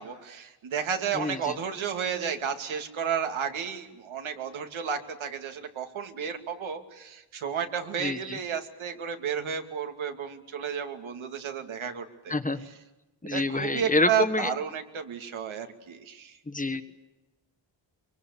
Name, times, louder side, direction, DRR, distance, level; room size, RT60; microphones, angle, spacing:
voice 1, 0.0-12.8 13.3-16.4, right 7 dB, 85° right, 5 dB, 2.8 m, -32 dB
voice 2, 1.2-1.5 8.0-8.2 12.3-12.7 13.2-14.5 16.5-16.8, left 2 dB, 15° left, 9 dB, 1.3 m, -27 dB
24.0 x 24.0 x 8.5 m, 1.0 s
wide cardioid pair, 125°, 47 cm